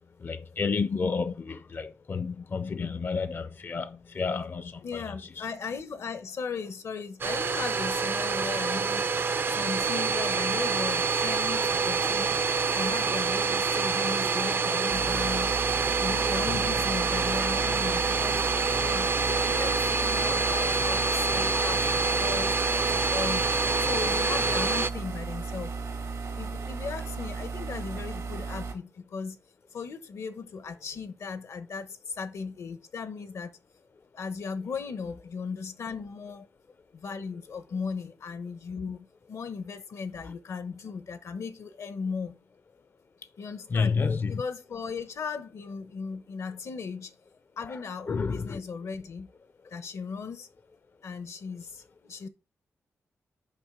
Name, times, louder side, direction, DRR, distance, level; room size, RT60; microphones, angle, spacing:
voice 1, 0.2-5.5 16.5-16.6 21.8-21.9 43.7-44.4 47.7-47.8 48.1-48.6, left 5 dB, 45° left, 0.5 m, -30 dB
voice 2, 4.8-9.1 9.4-12.4 12.7-15.6 16.0-18.5 18.8-23.5 23.8-25.7 26.4-29.4 29.7-33.6 34.1-36.5 36.9-42.4 43.4-44.0 44.3-47.1 47.6-49.3 49.7-50.5 51.0-52.3, left 5 dB, 80° left, 1.0 m, -37 dB
Domestic sounds home sounds, 7.2-24.9, right 4 dB, 45° right, 0.4 m, -26 dB
sound 1, 14.9-28.7, right 4 dB, 90° right, 1.9 m, -35 dB
7.1 x 5.3 x 4.9 m
cardioid pair, 90°, 5 cm